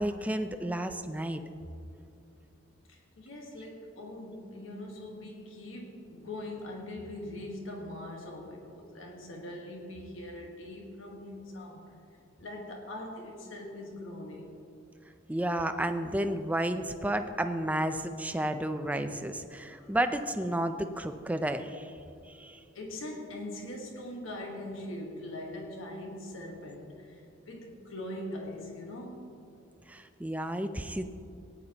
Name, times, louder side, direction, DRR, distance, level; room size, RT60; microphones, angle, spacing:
voice 1, 0.0-1.4 15.3-22.0 22.3-22.6 29.9-31.0, right 1 dB, 5° right, 8 dB, 0.4 m, -32 dB
voice 2, 2.9-11.9 12.4-14.6 19.8-20.0 22.7-29.3, left 1 dB, 85° left, 0 dB, 1.5 m, -42 dB
17.5 x 10.0 x 2.9 m, 2.7 s
head